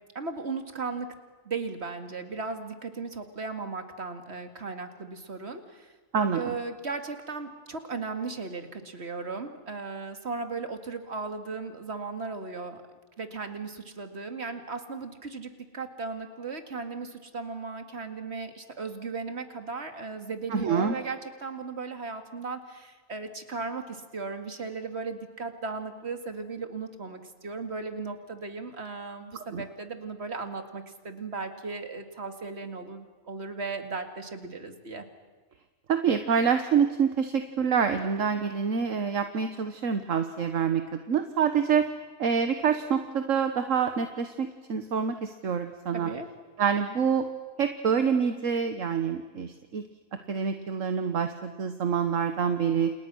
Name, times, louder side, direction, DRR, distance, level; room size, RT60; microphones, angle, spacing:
voice 1, 0.1-1.1 1.5-5.9 6.3-12.8 13.2-35.1 45.9-46.3, right 4 dB, 50° right, 7 dB, 2.4 m, -36 dB
voice 2, 6.1-6.5 20.5-20.9 29.5-29.6 35.9-41.9 42.2-46.1 46.6-47.3 47.6-49.8 50.3-52.9, right 6 dB, 65° right, 8 dB, 1.5 m, -26 dB
29.5 x 29.0 x 6.2 m, 1.3 s
omnidirectional pair, 1.5 m